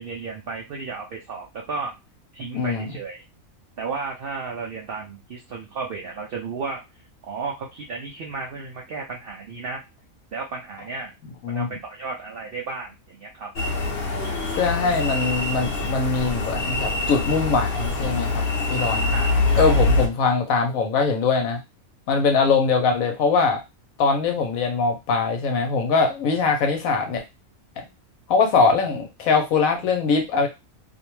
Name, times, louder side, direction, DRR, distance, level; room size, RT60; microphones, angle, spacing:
voice 1, 0.0-2.0 2.3-3.2 3.8-6.8 7.2-9.8 10.3-11.1 11.5-13.5 14.0-14.5 19.1-19.7, right 4 dB, 75° right, 0 dB, 0.5 m, -33 dB
voice 2, 2.5-2.9 11.4-11.7 14.6-18.4 18.7-19.0 19.5-21.6 22.1-23.6 24.0-27.2 27.8-27.9 28.3-30.5, left 4 dB, 75° left, 4 dB, 1.1 m, -22 dB
sound 1, 13.6-20.1, left 3 dB, 50° left, 0.8 m, -24 dB
2.6 x 2.1 x 3.0 m, 0.24 s
omnidirectional pair, 1.5 m